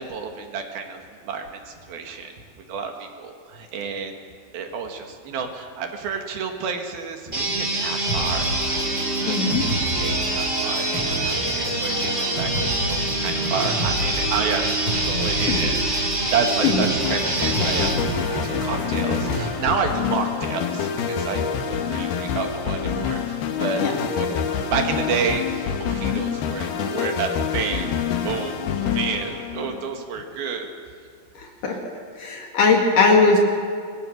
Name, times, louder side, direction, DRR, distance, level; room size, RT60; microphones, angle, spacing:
voice 1, 0.0-4.2 4.5-8.6 9.2-14.8 15.0-23.8 24.1-30.7, right 5 dB, 75° right, 3 dB, 3.7 m, -30 dB
sound 1, 7.3-18.0, right 1 dB, 15° right, 2.6 m, -26 dB
sound 2, 8.1-19.5, right 1 dB, 35° left, 6.3 m, -29 dB
voice 2, 9.3-9.7 15.5-15.7 16.6-16.8 23.8-23.9 26.1-26.2 31.3-31.8 32.1-33.4, left 4 dB, 60° left, 0 dB, 3.4 m, -19 dB
sound 3, 17.0-30.0, left 7 dB, 85° left, 3.4 m, -27 dB
24.5 x 21.5 x 6.6 m, 2.1 s
omnidirectional pair, 4.3 m